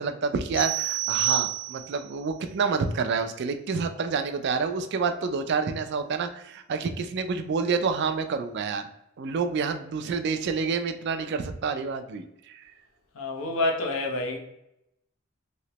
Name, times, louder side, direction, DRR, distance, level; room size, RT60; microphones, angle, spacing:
voice 1, 0.0-8.9 9.2-12.6, right 5 dB, 55° right, 0.4 m, -28 dB
sound 1, 0.5-2.1, right 10 dB, 10° left, 1.3 m, -28 dB
voice 2, 13.1-14.4, left 2 dB, 85° left, 0.7 m, -27 dB
3.1 x 2.8 x 2.8 m
head